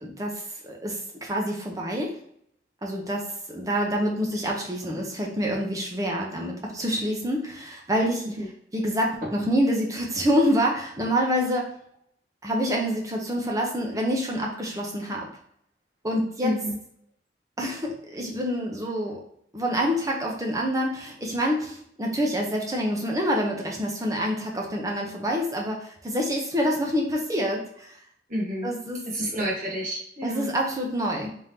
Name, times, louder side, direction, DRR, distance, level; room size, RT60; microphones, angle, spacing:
voice 1, 0.0-2.2 2.8-8.3 8.7-11.7 12.4-15.3 16.0-16.6 17.6-19.2 19.5-28.0 28.6-29.5 30.2-31.4, equal, 20° right, -1 dB, 0.8 m, -27 dB
voice 2, 16.4-16.8 28.3-28.7 29.1-30.5, equal, 45° right, -4 dB, 1.4 m, -29 dB
3.5 x 3.4 x 2.8 m, 0.68 s
head